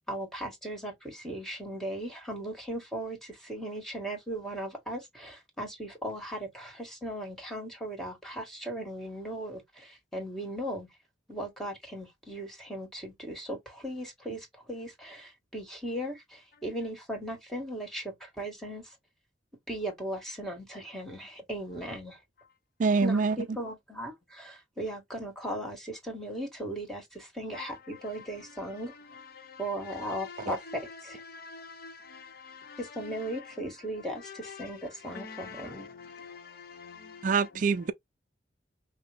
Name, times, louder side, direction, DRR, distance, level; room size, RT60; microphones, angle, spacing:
voice 1, 0.1-10.9 11.3-18.9 19.7-22.2 23.0-24.1 24.4-28.9 29.6-31.2 32.8-35.9 37.5-37.6, right 1 dB, ahead, 1.8 m, -37 dB
voice 2, 22.8-23.4 30.5-30.6 37.2-37.9, right 4 dB, 45° right, 0.4 m, -25 dB
voice 3, 27.5-28.8 29.1-33.5 34.2-37.5, left 5 dB, 55° left, 0.9 m, -47 dB
5.4 x 2.2 x 3.4 m
head